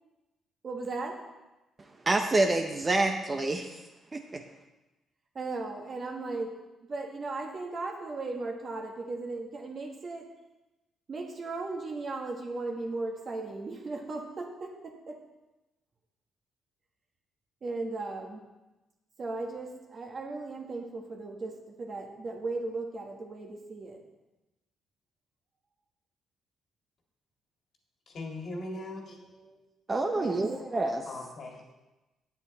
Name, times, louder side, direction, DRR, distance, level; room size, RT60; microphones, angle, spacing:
voice 1, 0.6-1.2 5.3-6.5 6.9-10.3 11.1-15.2 17.6-18.4 19.2-21.5 21.8-24.0 28.7-29.6 30.2-30.6 31.7-31.8, right 3 dB, 40° right, 2 dB, 1.4 m, -37 dB
voice 2, 2.1-3.8 4.1-4.4 29.9-31.1, right 2 dB, 25° right, 5 dB, 0.6 m, -27 dB
voice 3, 28.1-29.2 31.1-31.6, left 2 dB, 50° left, 0 dB, 1.8 m, -39 dB
8.5 x 8.2 x 4.1 m, 1.0 s
cardioid pair, 110°, 0 cm